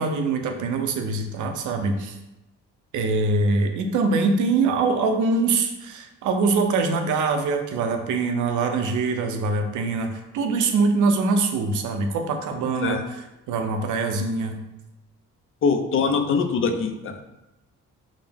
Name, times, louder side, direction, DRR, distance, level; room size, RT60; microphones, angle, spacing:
voice 1, 0.0-2.2 2.9-13.2 13.5-14.6, right 3 dB, 75° right, 5 dB, 0.6 m, -23 dB
voice 2, 15.6-17.2, left 5 dB, 45° left, 6 dB, 0.5 m, -23 dB
4.9 x 2.0 x 3.4 m, 0.97 s
cardioid pair, 90°, 30 cm